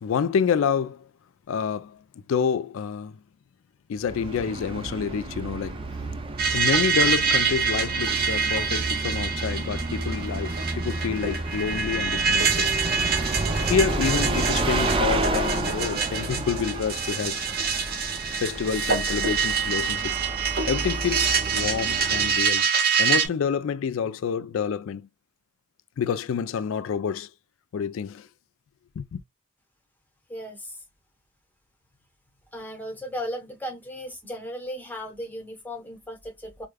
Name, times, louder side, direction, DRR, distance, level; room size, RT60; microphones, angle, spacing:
voice 1, 0.0-1.0 1.5-2.0 2.3-3.2 3.9-5.8 6.5-12.7 13.7-17.4 18.4-20.1 20.7-22.7 23.0-25.1 26.0-27.3 27.7-28.3 29.0-29.2, left 6 dB, 65° left, 0.3 m, -28 dB
Bus, 4.0-22.6, right 2 dB, 25° right, 0.4 m, -31 dB
sound 1, 6.4-23.3, right 6 dB, 45° right, 0.9 m, -26 dB
voice 2, 30.3-30.8 32.5-36.7, equal, 10° left, 0.9 m, -36 dB
4.8 x 2.2 x 2.2 m
head